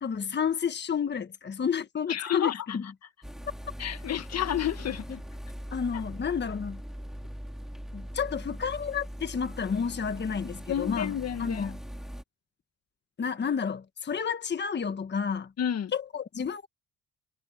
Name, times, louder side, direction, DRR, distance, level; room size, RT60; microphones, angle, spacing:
voice 1, 0.0-2.9 5.7-6.8 7.9-11.8 13.2-15.5 15.9-16.7, left 6 dB, 35° left, 1.4 m, -31 dB
voice 2, 2.1-2.6 3.8-5.2 5.9-6.0 10.7-11.7 15.6-15.9, left 10 dB, 55° left, 1.6 m, -31 dB
sound 1, 3.2-12.2, equal, ahead, 3.6 m, -41 dB
cardioid pair, 90°, 30 cm